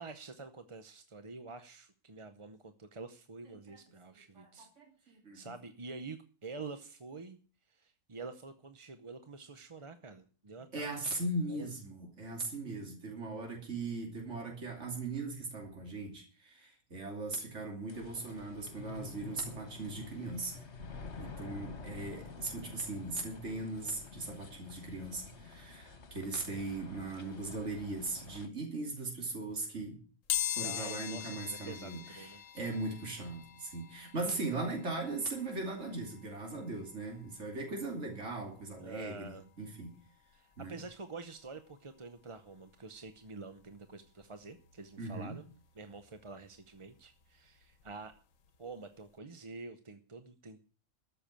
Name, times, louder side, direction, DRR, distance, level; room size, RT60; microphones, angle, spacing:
voice 1, 0.0-4.7 5.0-7.4 7.7-11.2 11.5-11.7 30.6-32.4 38.8-39.4 40.3-45.4 45.7-48.2 48.6-50.6, right 4 dB, 30° right, 9 dB, 0.7 m, -47 dB
voice 2, 4.1-5.5 10.7-20.6 21.2-30.0 30.5-39.9 40.6-40.8 45.0-45.4, right 2 dB, 65° right, 0 dB, 3.3 m, -39 dB
sound 1, 17.9-28.5, left 4 dB, 60° left, 1.7 m, -49 dB
sound 2, 30.3-41.0 41.4-41.5 42.7-42.8 43.1-45.2 45.5-48.1 48.5-48.7 49.0-49.1, left 11 dB, 85° left, 1.3 m, -43 dB
13.5 x 6.8 x 8.9 m, 0.41 s
omnidirectional pair, 1.3 m